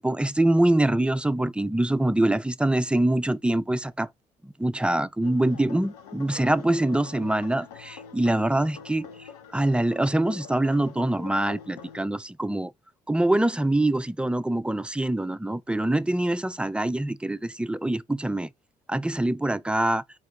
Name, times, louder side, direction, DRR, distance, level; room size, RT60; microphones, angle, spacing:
voice 1, 0.0-4.1 4.6-9.1 9.5-12.7 13.1-18.5 18.9-20.0, right 1 dB, 5° right, 0.4 m, -24 dB
sound 1, 5.2-12.1, left 7 dB, 85° left, 0.6 m, -45 dB
4.3 x 2.6 x 3.7 m
hypercardioid pair, 50°, 19 cm